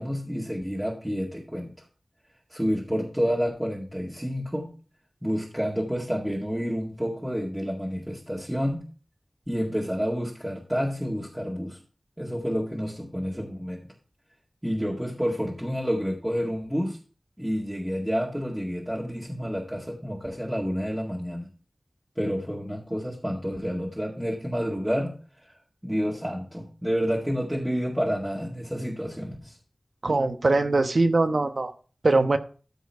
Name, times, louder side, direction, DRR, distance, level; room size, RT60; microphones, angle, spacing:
voice 1, 0.0-1.8 2.5-4.7 5.2-8.8 9.5-11.8 12.2-13.8 14.6-17.0 17.4-21.5 22.2-25.2 25.4-25.6 25.8-29.6, equal, 5° right, -4 dB, 2.0 m, -29 dB
voice 2, 30.0-31.7 32.0-32.4, right 3 dB, 70° right, 8 dB, 1.0 m, -22 dB
13.5 x 4.6 x 4.6 m, 0.39 s
wide cardioid pair, 60°, 0 cm